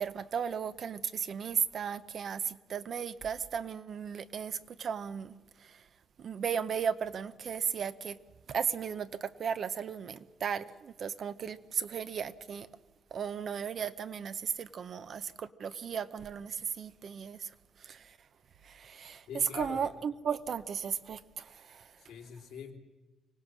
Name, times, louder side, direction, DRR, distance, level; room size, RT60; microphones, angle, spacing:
voice 1, 0.0-5.8 6.2-8.2 8.5-12.7 13.1-17.5 17.8-18.2 18.6-21.9, right 7 dB, 55° right, 0.8 m, -35 dB
voice 2, 19.3-19.8 22.0-22.8, left 7 dB, 85° left, 2.8 m, -44 dB
25.0 x 17.5 x 6.2 m
cardioid pair, 90°, 0 cm